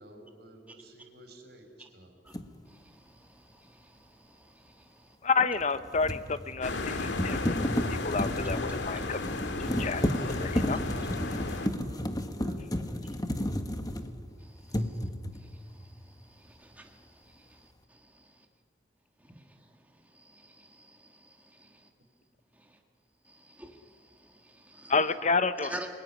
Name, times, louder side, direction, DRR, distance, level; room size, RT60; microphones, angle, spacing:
voice 1, 0.0-2.1 11.8-13.0, right 1 dB, 65° right, 5 dB, 4.8 m, -52 dB
sound 1, 2.3-2.5 5.6-14.3 14.7-15.5, left 1 dB, 20° left, 1.4 m, -32 dB
voice 2, 2.7-5.2 11.3-11.4 14.4-18.4 19.2-19.5 20.1-21.9 22.6-22.8 23.3-24.9 25.6-25.9, right 1 dB, 10° right, 2 dB, 1.7 m, -50 dB
voice 3, 5.2-7.6 8.0-9.2 9.6-10.8 11.3-11.4 24.9-25.8, left 4 dB, 40° left, 12 dB, 0.9 m, -30 dB
sound 2, 6.6-11.7, left 3 dB, 90° left, 2.0 m, -34 dB
28.0 x 20.0 x 9.9 m, 2.1 s
head